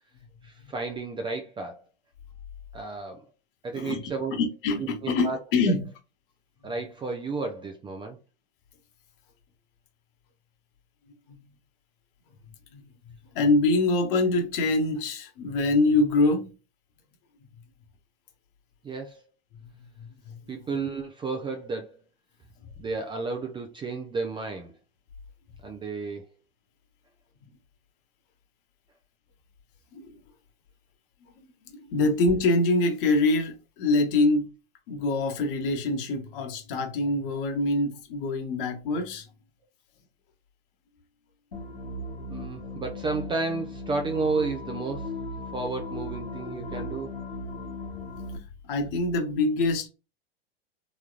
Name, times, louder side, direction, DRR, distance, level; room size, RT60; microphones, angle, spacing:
voice 1, 0.4-1.8 2.7-3.2 3.6-4.4 4.8-5.4 6.6-8.2 18.8-19.2 20.5-21.9 22.8-24.7 25.6-26.2 42.3-45.1 45.5-47.1, right 3 dB, 15° right, 0.5 m, -32 dB
voice 2, 4.3-5.9 11.3-11.4 12.7-12.8 13.3-16.5 19.7-20.4 29.9-30.2 31.2-31.3 31.7-34.5 34.9-39.3 42.6-42.7 48.6-49.9, left 2 dB, 55° left, 1.1 m, -25 dB
sound 1, 41.5-48.4, left 2 dB, 85° left, 1.3 m, -37 dB
3.6 x 3.1 x 2.4 m
hypercardioid pair, 100°, 31 cm